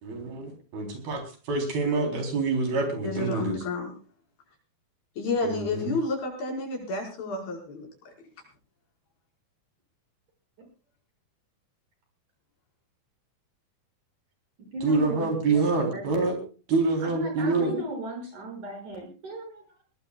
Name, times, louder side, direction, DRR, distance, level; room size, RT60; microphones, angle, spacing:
voice 1, 0.0-3.6 5.4-5.9 14.8-16.4 16.7-17.7, right 3 dB, 75° right, 3 dB, 5.6 m, -26 dB
voice 2, 3.0-3.9 5.2-7.9 17.4-17.8, left 3 dB, 75° left, 0 dB, 6.9 m, -30 dB
voice 3, 14.6-16.0 17.0-19.8, equal, 55° right, 2 dB, 7.6 m, -36 dB
22.0 x 18.5 x 2.3 m, 0.36 s
omnidirectional pair, 4.3 m